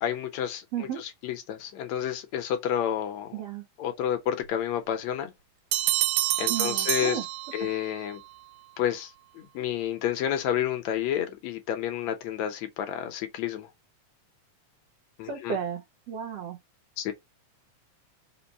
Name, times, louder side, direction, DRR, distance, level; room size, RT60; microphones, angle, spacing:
voice 1, 0.0-3.4 3.8-5.3 6.4-7.2 7.5-8.2 8.8-13.7 15.2-15.6 17.0-17.1, left 10 dB, 70° left, 1.9 m, -30 dB
voice 2, 3.3-3.6 6.5-7.2 15.3-15.8 16.1-16.6, right 8 dB, 65° right, 1.7 m, -33 dB
Bell, 5.7-8.0, right 16 dB, 85° right, 2.1 m, -27 dB
5.3 x 2.1 x 4.1 m
omnidirectional pair, 3.6 m